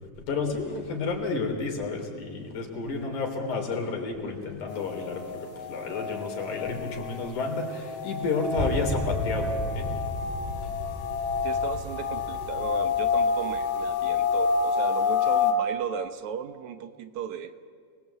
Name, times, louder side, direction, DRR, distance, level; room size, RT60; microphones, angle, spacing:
voice 1, 0.3-9.9, left 4 dB, 70° left, 2 dB, 4.8 m, -31 dB
sound 1, 4.7-15.5, left 5 dB, 90° left, 4.2 m, -29 dB
sound 2, 8.5-14.7, left 1 dB, 15° right, 2.3 m, -35 dB
voice 2, 11.4-17.7, right 8 dB, 70° right, 10 dB, 2.2 m, -36 dB
30.0 x 21.0 x 8.2 m, 2.1 s
omnidirectional pair, 3.6 m